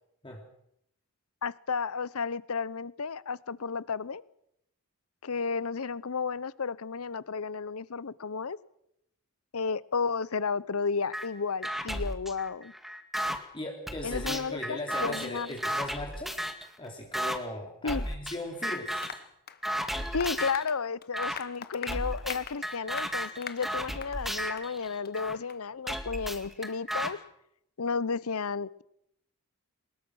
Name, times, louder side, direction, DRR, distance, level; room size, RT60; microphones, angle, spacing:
voice 1, 1.4-4.2 5.2-8.6 9.5-12.7 14.0-15.5 17.8-18.1 20.1-27.2 27.8-28.8, left 5 dB, 75° left, 20 dB, 0.7 m, -32 dB
sound 1, 11.1-11.3 11.6-13.4 13.9-16.7 17.1-17.4 17.9-18.4 18.6-19.2 19.6-20.6 21.1-21.4 21.9-25.3 25.9-27.1, equal, ahead, 1.9 m, -34 dB
voice 2, 13.5-16.4 16.8-19.2, left 1 dB, 25° left, 0 dB, 3.1 m, -38 dB
Applause, 19.0-24.2 24.6-24.7 25.0-25.1 25.5-25.6, left 7 dB, 45° left, 1.3 m, -43 dB
24.0 x 20.5 x 6.4 m, 0.77 s
head